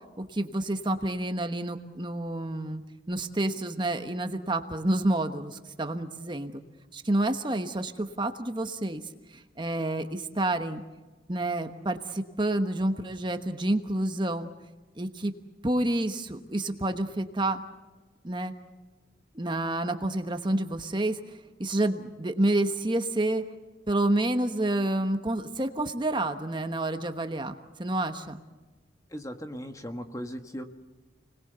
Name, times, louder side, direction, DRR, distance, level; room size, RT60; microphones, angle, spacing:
voice 1, 0.2-2.8 3.1-6.6 6.9-9.0 9.3-10.8 11.3-14.5 15.0-15.3 15.6-17.6 18.2-18.5 19.3-21.2 21.6-23.4 23.9-28.4, right 1 dB, 25° right, 7 dB, 1.2 m, -29 dB
voice 2, 29.1-30.6, equal, 20° left, 6 dB, 1.4 m, -37 dB
30.0 x 20.5 x 6.8 m, 1.2 s
head